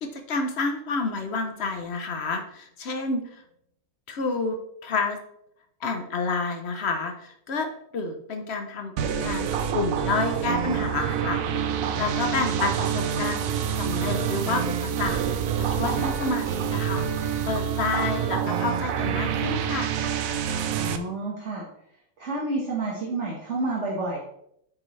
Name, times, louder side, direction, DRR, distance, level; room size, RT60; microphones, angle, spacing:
voice 1, 0.0-3.4 4.1-5.2 5.8-7.7 7.9-11.7 12.0-13.4 13.8-19.9, left 3 dB, 65° left, 5 dB, 0.6 m, -29 dB
sound 1, 9.0-21.0, right 8 dB, 85° right, 0.7 m, -27 dB
voice 2, 20.7-21.7 22.2-24.2, right 2 dB, 40° right, -4 dB, 1.7 m, -29 dB
8.8 x 6.1 x 3.2 m, 0.73 s
omnidirectional pair, 2.2 m